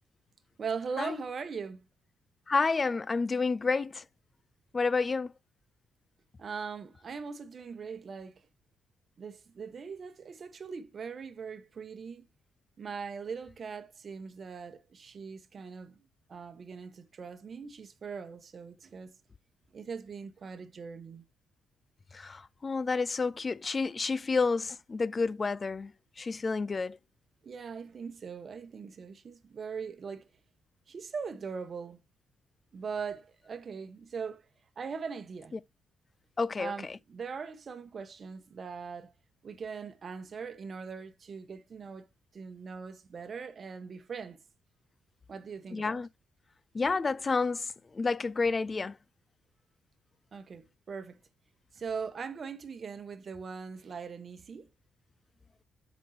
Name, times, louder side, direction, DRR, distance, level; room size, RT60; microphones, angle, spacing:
voice 1, 0.6-1.9 6.4-8.5 9.2-12.3 12.8-16.0 16.3-19.2 19.7-21.3 27.4-30.3 30.9-32.0 32.7-34.5 34.8-35.6 36.6-39.1 39.4-42.1 42.3-44.4 45.3-46.0 50.3-51.2 51.7-54.7, right 5 dB, 45° right, 1.3 m, -40 dB
voice 2, 2.5-4.0 4.7-5.3 22.1-25.9 26.2-27.0 36.4-36.7 45.7-46.1 46.7-49.0, left 4 dB, 30° left, 0.4 m, -30 dB
12.5 x 5.4 x 2.9 m
cardioid pair, 90°, 0 cm